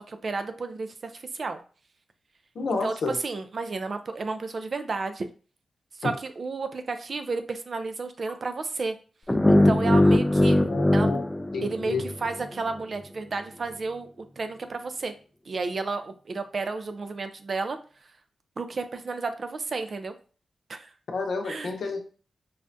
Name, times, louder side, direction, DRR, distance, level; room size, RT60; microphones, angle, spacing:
voice 1, 0.1-1.6 2.7-5.3 6.0-9.0 9.5-10.6 10.9-11.1 11.6-15.1 15.5-17.8 18.6-20.1 20.7-20.9 21.5-21.7, right 3 dB, 60° right, 8 dB, 0.4 m, -32 dB
voice 2, 2.5-3.2 6.0-6.1 10.7-11.2 11.5-12.0 21.1-22.1, left 4 dB, 75° left, 3 dB, 0.7 m, -30 dB
sound 1, 9.3-12.4, left 1 dB, 15° left, 0.4 m, -21 dB
4.8 x 2.1 x 2.5 m, 0.38 s
cardioid pair, 50°, 0 cm